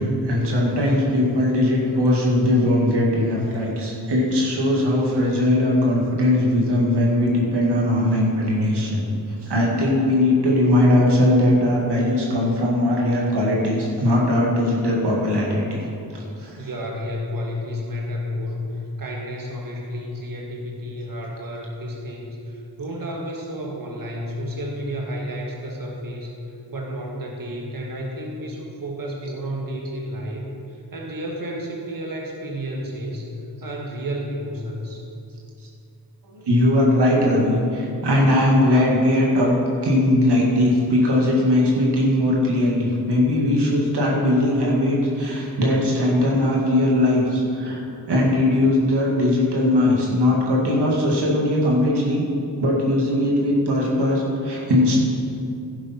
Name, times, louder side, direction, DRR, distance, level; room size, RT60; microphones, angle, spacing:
voice 1, 0.0-9.1 9.4-16.7 36.3-39.5 39.8-47.8 48.1-52.2 52.6-55.0, left 1 dB, 90° right, -3 dB, 2.1 m, -20 dB
voice 2, 16.6-26.3 26.7-35.1, equal, 55° right, -1 dB, 1.7 m, -31 dB
11.5 x 10.0 x 4.4 m, 2.6 s
cardioid pair, 50°, 39 cm